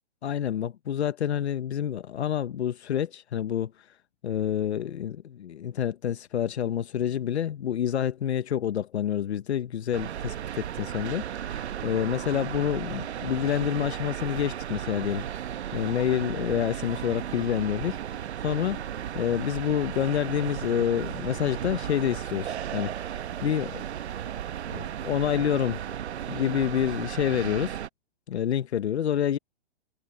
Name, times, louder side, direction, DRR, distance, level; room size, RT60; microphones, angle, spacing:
voice 1, 0.2-3.7 4.2-15.4 15.7-18.8 19.1-22.9 23.4-23.8 24.7-25.8 26.3-27.8 28.3-29.4, left 9 dB, 80° left, 1.1 m, -28 dB
sound 1, 9.9-27.9, right 10 dB, 80° right, 1.1 m, -35 dB
hypercardioid pair, 160°, 33 cm